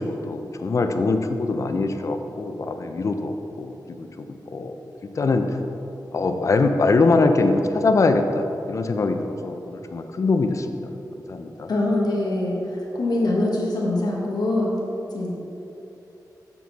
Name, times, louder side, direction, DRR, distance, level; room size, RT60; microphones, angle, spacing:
voice 1, 0.0-4.7 5.2-5.5 6.1-10.7 11.3-11.7, left 3 dB, 45° left, 6 dB, 0.4 m, -23 dB
voice 2, 11.7-14.8 15.1-15.3, left 2 dB, 65° left, -3 dB, 1.2 m, -23 dB
7.2 x 5.9 x 4.0 m, 2.9 s
wide cardioid pair, 180°, 7 cm